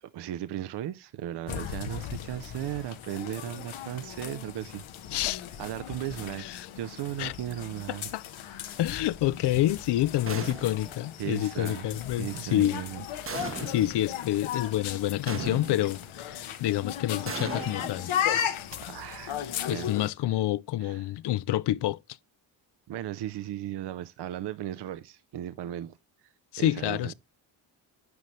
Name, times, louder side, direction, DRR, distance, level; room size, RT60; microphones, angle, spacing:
voice 1, 0.0-4.8 5.6-8.1 11.2-13.0 18.7-19.4 19.7-19.9 20.8-21.0 22.9-26.0 26.6-27.1, right 12 dB, 60° right, 0.6 m, -36 dB
sound 1, 1.5-20.1, left 10 dB, 80° left, 1.1 m, -36 dB
voice 2, 5.1-5.4 6.4-6.7 7.2-7.3 7.9-8.2 8.8-12.8 13.6-18.1 19.6-22.0 26.5-27.1, left 14 dB, 60° left, 0.5 m, -28 dB
sound 2, 10.3-11.0 13.3-14.0 15.3-16.0 17.3-18.5, right 5 dB, 30° right, 0.8 m, -38 dB
9.6 x 5.2 x 3.1 m
cardioid pair, 110°, 47 cm